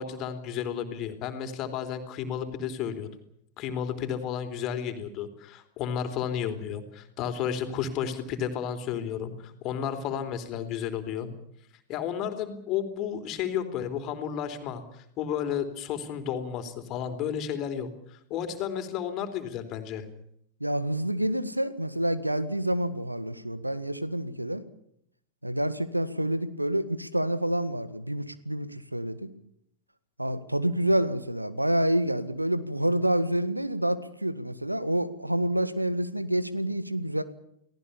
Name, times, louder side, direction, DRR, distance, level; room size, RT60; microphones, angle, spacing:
voice 1, 0.0-3.1 3.6-11.3 11.9-20.0, left 8 dB, 35° left, 8 dB, 3.8 m, -32 dB
voice 2, 20.6-24.6 25.4-29.3 30.2-37.2, right 1 dB, 85° right, 13 dB, 1.8 m, -28 dB
29.5 x 18.5 x 7.1 m, 0.72 s
figure-of-eight pair, 90°, 0 cm